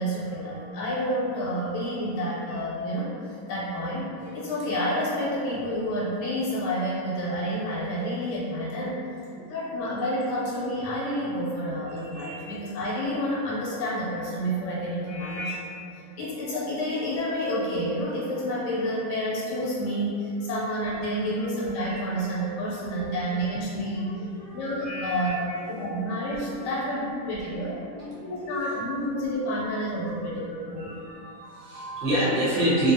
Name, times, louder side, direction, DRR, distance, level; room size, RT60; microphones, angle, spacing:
voice 1, 0.0-9.0 9.5-15.6 15.9-24.1 24.5-27.8 28.3-31.0, equal, 85° left, -7 dB, 1.2 m, -29 dB
voice 2, 12.0-12.3 15.1-15.4 21.9-22.0 22.4-23.4 24.3-25.6 26.7-26.8 28.0-28.6 29.4-29.7 30.1-32.9, right 1 dB, 45° right, -10 dB, 0.8 m, -31 dB
2.6 x 2.6 x 2.6 m, 2.5 s
omnidirectional pair, 1.8 m